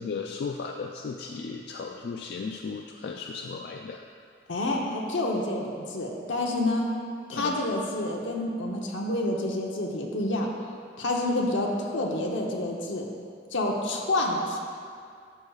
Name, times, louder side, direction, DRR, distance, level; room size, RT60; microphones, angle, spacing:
voice 1, 0.0-4.0 7.3-7.6, left 5 dB, 55° left, 2 dB, 0.3 m, -35 dB
voice 2, 4.5-6.9 7.3-10.5 11.0-13.1 13.5-14.6, left 1 dB, 85° left, -1 dB, 0.9 m, -28 dB
11.5 x 6.4 x 2.4 m, 2.3 s
head